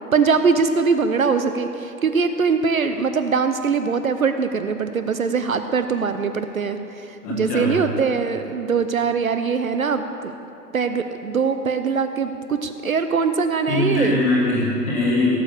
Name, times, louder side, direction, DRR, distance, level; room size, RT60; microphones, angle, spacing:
voice 1, 0.1-10.3 10.7-14.2, right 5 dB, 55° right, 8 dB, 0.7 m, -22 dB
voice 2, 7.2-7.8 13.7-15.4, left 2 dB, 10° left, -6 dB, 1.3 m, -21 dB
17.0 x 7.3 x 6.7 m, 2.8 s
hypercardioid pair, 170°, 50 cm